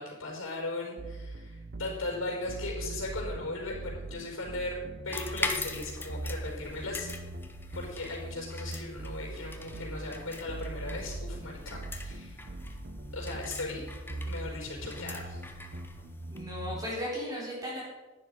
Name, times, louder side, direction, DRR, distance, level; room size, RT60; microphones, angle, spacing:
voice 1, 0.0-4.8 5.0-7.1 7.7-12.4 13.1-13.8 14.3-15.4, left 2 dB, 80° left, -2 dB, 4.5 m, -38 dB
sound 1, 1.0-16.9, right 2 dB, 50° right, 0.7 m, -41 dB
sound 2, 5.1-16.4, left 3 dB, 10° left, 0.8 m, -41 dB
voice 2, 16.3-17.8, equal, 20° right, -4 dB, 3.6 m, -36 dB
11.0 x 9.4 x 5.2 m, 1.3 s
head